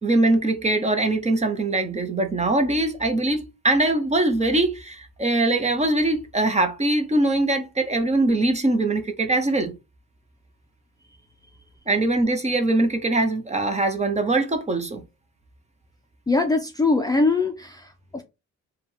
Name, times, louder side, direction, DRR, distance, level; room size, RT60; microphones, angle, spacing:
voice 1, 0.0-9.7 11.9-15.0, right 2 dB, 20° right, 0.9 m, -22 dB
voice 2, 16.3-18.2, left 3 dB, 10° left, 0.6 m, -22 dB
3.6 x 2.4 x 4.5 m
cardioid pair, 90°, 30 cm